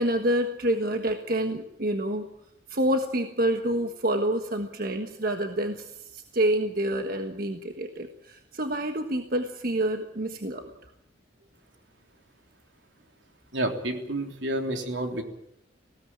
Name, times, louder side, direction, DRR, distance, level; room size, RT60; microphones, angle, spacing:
voice 1, 0.0-2.2 2.7-10.7, right 1 dB, 50° right, 5 dB, 1.4 m, -27 dB
voice 2, 13.5-15.2, right 1 dB, 80° right, 4 dB, 3.4 m, -29 dB
19.0 x 17.0 x 8.8 m, 0.80 s
head